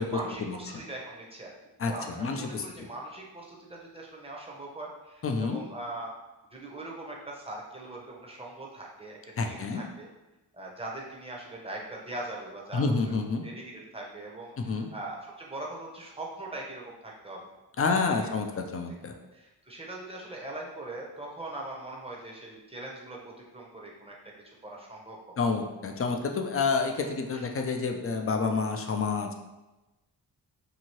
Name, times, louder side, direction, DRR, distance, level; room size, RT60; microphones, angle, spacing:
voice 1, 0.1-1.5 1.9-6.2 6.5-9.2 9.4-10.1 10.5-17.5 17.9-18.3 19.3-24.2 24.4-25.5 27.0-27.5, right 2 dB, 15° right, -2 dB, 0.7 m, -41 dB
voice 2, 2.2-2.6 5.2-5.6 9.4-9.8 12.7-13.4 14.6-14.9 17.8-19.1 25.4-29.3, left 4 dB, 35° left, 4 dB, 0.4 m, -28 dB
2.8 x 2.6 x 2.9 m, 1.1 s
cardioid pair, 70°, 40 cm